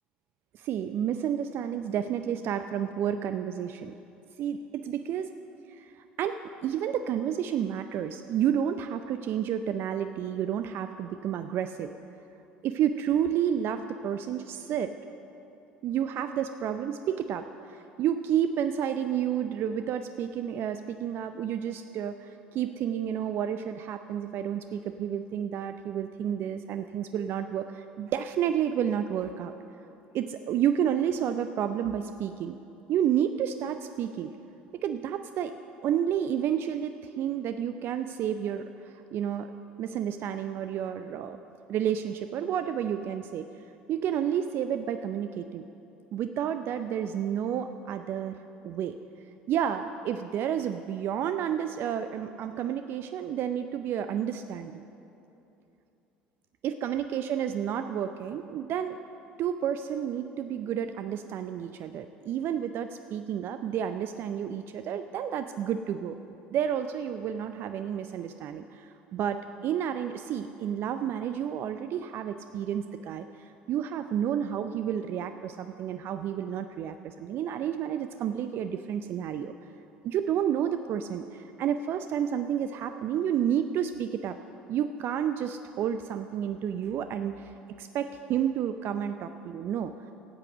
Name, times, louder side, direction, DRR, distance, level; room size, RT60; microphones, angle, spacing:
voice 1, 0.5-3.9 4.4-5.3 5.7-11.9 12.6-15.0 15.8-29.5 30.1-32.6 32.9-34.3 34.7-35.5 35.8-39.5 39.8-41.4 41.7-43.5 43.9-45.6 46.1-48.4 48.6-49.0 49.5-54.8 56.6-59.0 59.4-66.2 66.5-79.6 80.0-84.4 84.7-87.5 87.8-89.9, right 9 dB, 50° right, 9 dB, 0.5 m, -30 dB
13.5 x 8.3 x 7.7 m, 2.9 s
figure-of-eight pair, 65°, 5 cm